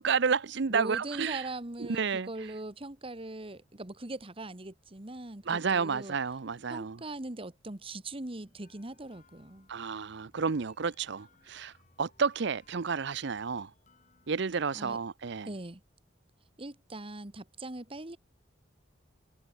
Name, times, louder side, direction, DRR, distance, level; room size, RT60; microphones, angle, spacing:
voice 1, 0.0-1.4 1.8-2.3 5.5-7.0 9.7-11.7 12.0-13.7 14.3-15.5, right 5 dB, 65° right, 0.6 m, -31 dB
voice 2, 0.7-6.1 6.7-9.7 14.7-15.0 15.4-15.8 16.6-18.2, right 2 dB, 30° right, 1.6 m, -41 dB
sound 1, 8.4-14.6, left 3 dB, 40° left, 4.6 m, -66 dB
head